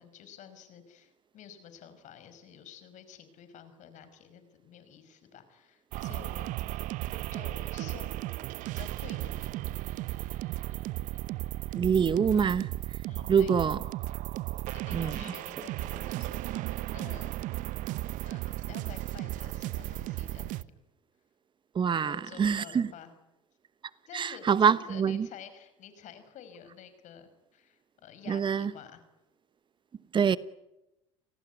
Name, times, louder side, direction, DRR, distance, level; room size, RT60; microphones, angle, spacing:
voice 1, 0.0-6.8 7.3-8.3 8.7-9.7 13.0-13.6 14.7-17.3 18.2-20.7 21.9-23.1 24.1-29.0, left 8 dB, 55° left, 5.5 m, -50 dB
sound 1, 5.9-20.6, right 16 dB, 60° right, 0.9 m, -35 dB
voice 2, 11.7-12.7 13.3-13.8 14.9-15.2 21.7-22.9 24.1-25.3 28.3-28.7 30.1-30.4, right 7 dB, 30° right, 1.0 m, -25 dB
29.5 x 18.5 x 9.4 m
hypercardioid pair, 80°, 15 cm